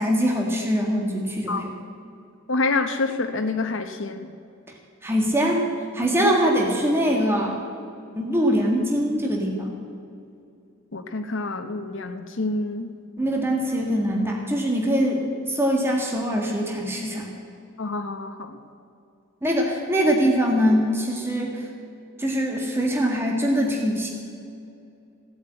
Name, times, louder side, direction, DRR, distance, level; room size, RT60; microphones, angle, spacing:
voice 1, 0.0-1.7 5.0-5.6 5.9-7.6 8.2-9.7 13.2-17.3 19.4-21.7 22.2-24.1, equal, 10° right, 0 dB, 1.7 m, -23 dB
voice 2, 2.5-4.3 6.2-6.3 10.9-12.9 17.8-18.6, left 3 dB, 70° left, 5 dB, 0.8 m, -27 dB
16.0 x 8.1 x 8.8 m, 2.5 s
head